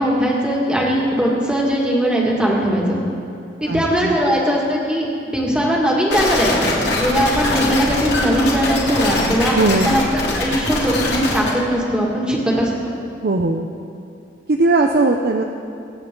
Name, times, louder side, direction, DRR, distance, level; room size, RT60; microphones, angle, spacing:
voice 1, 0.0-3.0 3.6-5.1 5.3-9.5 9.8-12.7, equal, 5° right, -3 dB, 2.1 m, -19 dB
voice 2, 3.7-4.2 9.5-10.0 13.2-13.7 14.5-15.4, right 3 dB, 55° right, 3 dB, 0.6 m, -18 dB
sound 1, 6.1-11.5, left 2 dB, 65° left, 2.7 m, -22 dB
24.5 x 8.3 x 3.9 m, 2.5 s
head